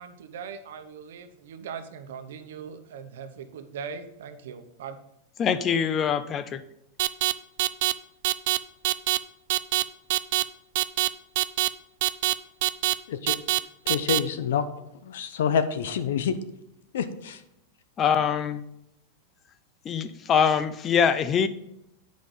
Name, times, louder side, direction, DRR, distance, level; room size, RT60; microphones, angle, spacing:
voice 1, 0.0-5.0, right 6 dB, 80° right, 8 dB, 0.9 m, -40 dB
voice 2, 5.4-6.4 18.0-18.6 19.9-21.5, left 7 dB, 25° left, 13 dB, 0.5 m, -23 dB
sound 1, 7.0-7.3 7.6-7.9 8.2-8.6 8.8-9.2 9.5-9.8 10.1-10.4 10.8-11.1 11.4-11.7 12.0-12.3 12.6-12.9 13.3-13.6 13.9-14.2, right 17 dB, 55° right, 0.3 m, -23 dB
voice 3, 13.9-14.7 15.0-16.3 16.9-17.4, left 7 dB, 80° left, 11 dB, 0.8 m, -27 dB
8.7 x 5.2 x 3.9 m, 0.82 s
supercardioid pair, 150°, 0 cm